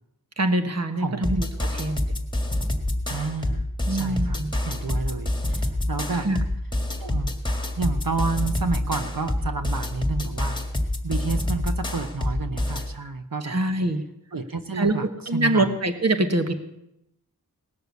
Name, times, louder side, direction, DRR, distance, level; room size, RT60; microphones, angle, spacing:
voice 1, 0.4-2.1 3.9-4.5 6.2-6.4 13.4-14.0 14.8-14.9 15.3-16.5, right 2 dB, 45° right, 8 dB, 1.2 m, -24 dB
voice 2, 1.0-1.3 3.1-3.6 3.9-6.3 7.0-7.3 7.8-10.6 11.0-13.6 14.3-15.1 15.3-15.7, right 4 dB, 60° right, 8 dB, 1.0 m, -30 dB
sound 1, 1.2-12.9, left 1 dB, 10° left, 1.7 m, -27 dB
18.5 x 6.8 x 8.1 m, 0.84 s
wide cardioid pair, 60°, 38 cm